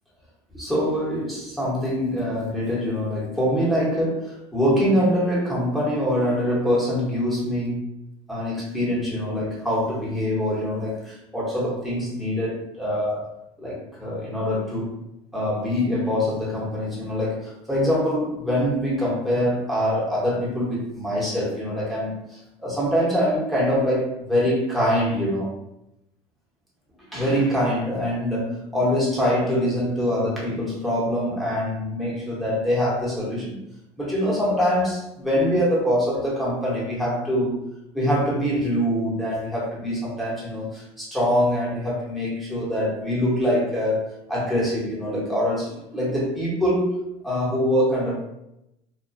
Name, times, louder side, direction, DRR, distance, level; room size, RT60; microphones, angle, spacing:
voice 1, 0.5-7.8 8.3-13.2 13.6-14.9 15.3-25.5 27.1-33.6 34.0-37.6 37.9-48.1, equal, ahead, -7 dB, 0.9 m, -24 dB
2.3 x 2.1 x 2.5 m, 0.84 s
cardioid pair, 130°, 14 cm